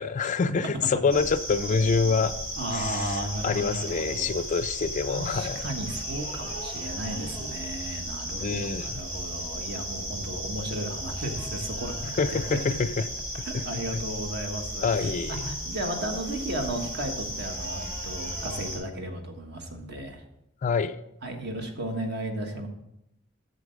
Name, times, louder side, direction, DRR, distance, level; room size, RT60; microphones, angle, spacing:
voice 1, 0.0-2.3 2.7-3.2 3.4-5.7 8.4-8.9 12.2-12.9 13.5-13.6 14.8-15.5 20.6-21.0, left 5 dB, 35° left, 14 dB, 0.3 m, -26 dB
sound 1, 1.1-18.8, equal, 40° right, 2.8 m, -35 dB
voice 2, 2.6-4.3 5.1-12.6 13.3-20.2 21.2-22.7, right 1 dB, 55° right, 4 dB, 1.4 m, -34 dB
8.3 x 6.8 x 5.1 m, 0.82 s
head